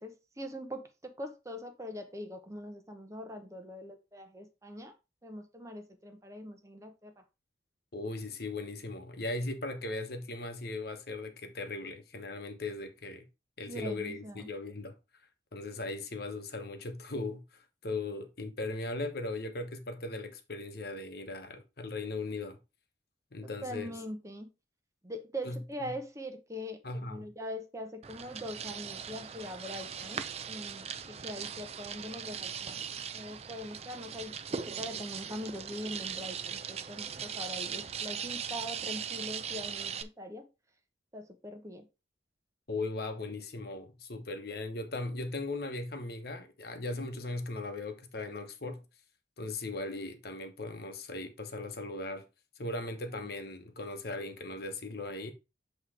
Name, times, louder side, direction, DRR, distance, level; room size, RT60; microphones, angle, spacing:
voice 1, 0.0-4.9 5.2-7.2 13.7-14.5 23.6-24.5 25.0-32.9 33.1-40.5 41.1-41.9, equal, 15° right, 0.9 m, -42 dB
voice 2, 7.9-13.3 13.6-15.0 15.5-22.6 23.3-23.9 25.4-25.9 26.8-27.3 42.7-48.8 49.4-52.3 52.6-55.3, left 2 dB, 55° left, 1.0 m, -38 dB
sound 1, 28.0-40.0, right 7 dB, 35° right, 0.5 m, -39 dB
8.1 x 3.1 x 4.9 m
head